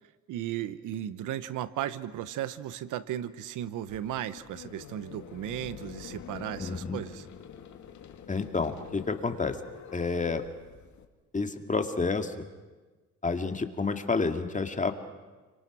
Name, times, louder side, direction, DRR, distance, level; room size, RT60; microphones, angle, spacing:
voice 1, 0.3-7.3, right 12 dB, 85° right, 15 dB, 1.0 m, -35 dB
sound 1, 3.9-11.0, left 8 dB, 70° left, 2.3 m, -46 dB
voice 2, 6.6-7.0 8.3-9.6 9.9-10.4 11.3-12.5 13.2-14.9, left 4 dB, 25° left, 6 dB, 2.2 m, -29 dB
29.5 x 24.5 x 6.2 m, 1.3 s
cardioid pair, 90°, 30 cm